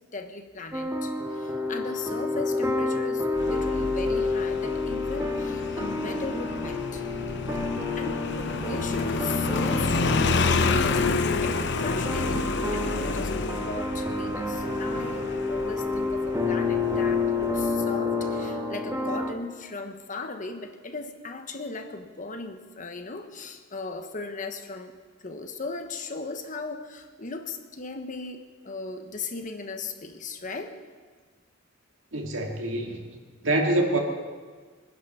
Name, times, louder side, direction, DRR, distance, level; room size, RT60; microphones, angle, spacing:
voice 1, 0.1-7.0 8.0-30.8, left 3 dB, 40° left, 7 dB, 1.2 m, -37 dB
sound 1, 0.7-19.3, left 3 dB, 15° right, 1.6 m, -29 dB
Motorcycle, 3.4-17.7, left 4 dB, 60° left, 0.8 m, -29 dB
voice 2, 32.1-33.0 33.4-34.0, right 1 dB, 75° right, 2 dB, 2.3 m, -25 dB
23.0 x 10.0 x 5.7 m, 1.5 s
head